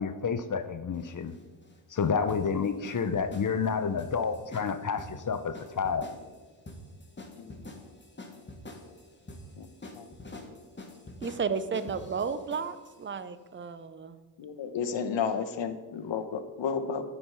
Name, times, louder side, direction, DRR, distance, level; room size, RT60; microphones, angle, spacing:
voice 1, 0.0-1.3 1.9-6.1, left 6 dB, 45° left, 11 dB, 0.6 m, -29 dB
sound 1, 0.9-13.0, left 1 dB, 25° left, 1.3 m, -46 dB
voice 2, 11.2-14.2, right 5 dB, 25° right, 13 dB, 0.5 m, -33 dB
voice 3, 14.4-17.0, left 6 dB, 75° left, 8 dB, 0.9 m, -32 dB
10.0 x 4.6 x 5.5 m, 1.3 s
cardioid pair, 70°, 44 cm